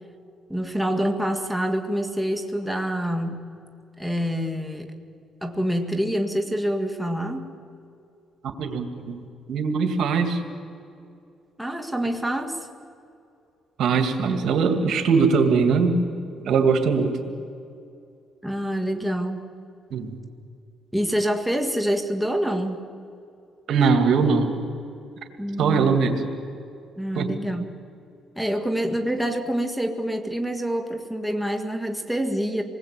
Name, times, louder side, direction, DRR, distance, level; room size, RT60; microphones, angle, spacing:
voice 1, 0.5-3.5 4.0-4.9 5.4-7.5 11.6-12.6 18.4-19.4 20.9-22.8 25.4-26.0 27.0-27.7 28.4-32.6, equal, ahead, 4 dB, 2.2 m, -26 dB
voice 2, 8.6-9.2 9.5-10.4 13.8-16.0 16.4-17.2 19.9-20.2 23.7-24.6 25.6-26.2 27.1-27.4, right 5 dB, 70° right, 6 dB, 2.5 m, -21 dB
27.5 x 20.5 x 8.5 m, 2.5 s
cardioid pair, 90°, 0 cm